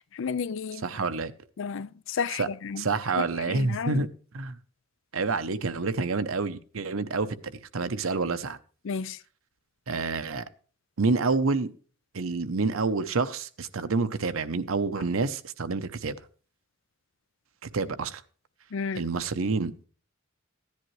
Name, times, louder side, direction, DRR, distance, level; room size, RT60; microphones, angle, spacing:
voice 1, 0.1-0.9 1.6-2.8 3.5-4.0 8.8-9.2 18.7-19.0, left 5 dB, 65° left, 0.4 m, -32 dB
voice 2, 0.8-1.3 2.4-2.5 2.8-4.1 4.3-4.6 5.1-8.6 9.9-10.5 11.0-11.7 12.1-16.2 17.6-18.2 18.9-19.9, right 4 dB, 80° right, 0.8 m, -28 dB
15.5 x 10.5 x 3.2 m
head